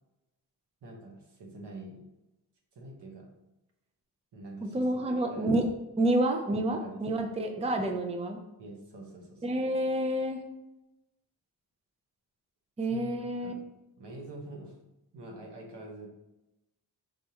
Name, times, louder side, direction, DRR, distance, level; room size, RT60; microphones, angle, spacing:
voice 1, 0.8-2.0 2.7-3.3 4.3-5.6 6.7-7.3 8.6-9.6 12.9-13.6 14.0-14.8 15.1-16.1, right 2 dB, 85° right, 0 dB, 1.2 m, -45 dB
voice 2, 4.7-5.7 6.0-8.4 9.4-10.4 12.8-13.5, right 1 dB, 15° right, 4 dB, 0.4 m, -28 dB
5.3 x 3.5 x 2.9 m, 0.95 s
wide cardioid pair, 135°, 40 cm